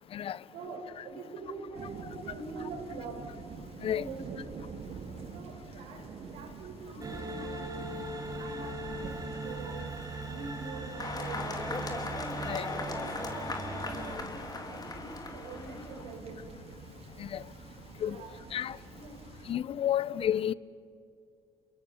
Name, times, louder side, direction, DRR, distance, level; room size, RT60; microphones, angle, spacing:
voice 1, 0.5-3.2 3.9-4.4 5.3-6.0 6.3-9.9 10.3-11.4 12.4-16.6 18.0-18.6 18.9-19.2, right 3 dB, 75° right, 5.3 m, -45 dB
sound 1, 1.7-19.5, right 6 dB, 60° right, 2.2 m, -46 dB
sound 2, 7.0-14.2, right 2 dB, 35° right, 4.2 m, -40 dB
sound 3, 11.0-16.1, left 3 dB, 35° left, 3.3 m, -38 dB
voice 2, 19.5-20.5, left 10 dB, 55° left, 0.7 m, -31 dB
28.5 x 23.0 x 7.0 m
supercardioid pair, 60°, 11 cm